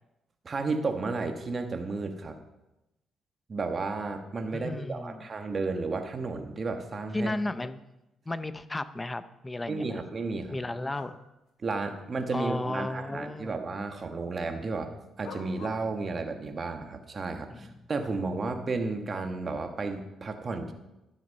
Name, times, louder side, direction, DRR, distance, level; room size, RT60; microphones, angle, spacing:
voice 1, 0.4-2.4 3.5-7.3 9.7-10.6 11.6-14.9 15.2-20.7, right 3 dB, 40° right, 5 dB, 1.4 m, -33 dB
voice 2, 4.5-5.3 7.1-7.8 8.3-10.0 10.5-11.2 12.3-13.6 17.5-17.7, left 2 dB, 15° left, 13 dB, 0.6 m, -34 dB
sound 1, 10.9-11.1 12.4-12.5 15.2-15.8, left 5 dB, 70° left, 1.6 m, -45 dB
12.0 x 7.5 x 5.4 m, 0.93 s
cardioid pair, 90°, 0 cm